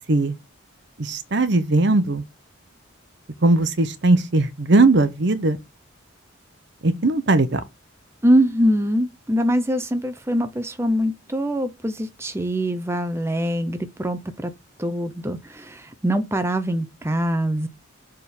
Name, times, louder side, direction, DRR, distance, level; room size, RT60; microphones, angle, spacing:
voice 1, 1.0-2.2 3.4-5.6 6.8-7.6, right 2 dB, 55° right, 0.8 m, -19 dB
voice 2, 8.2-14.5 14.8-17.7, equal, 10° right, 0.7 m, -23 dB
7.1 x 3.7 x 6.4 m
head